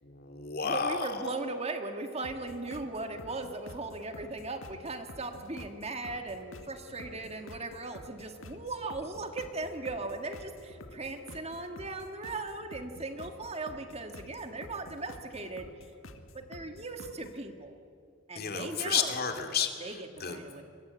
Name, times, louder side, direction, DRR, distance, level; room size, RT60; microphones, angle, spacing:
voice 1, 0.0-1.3 18.3-20.5, left 6 dB, 50° left, 5 dB, 2.4 m, -32 dB
voice 2, 0.6-15.7 16.3-17.8 18.3-19.2 19.8-20.6, right 2 dB, 30° right, 6 dB, 1.8 m, -38 dB
sound 1, 2.2-17.4, left 1 dB, 85° left, 1.9 m, -50 dB
25.5 x 23.0 x 8.3 m, 2.3 s
head